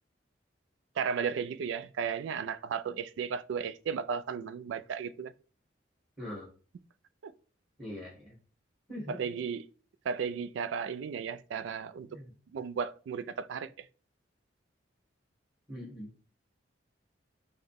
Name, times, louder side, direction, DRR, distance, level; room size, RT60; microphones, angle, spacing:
voice 1, 1.0-5.3 7.2-7.3 9.1-9.6 10.1-12.1 12.5-13.7, right 6 dB, 75° right, 0.3 m, -34 dB
voice 2, 6.2-6.5 7.8-8.4 8.9-9.4 12.0-12.3 15.7-16.1, left 1 dB, 5° right, 2.1 m, -42 dB
5.7 x 2.1 x 3.4 m
head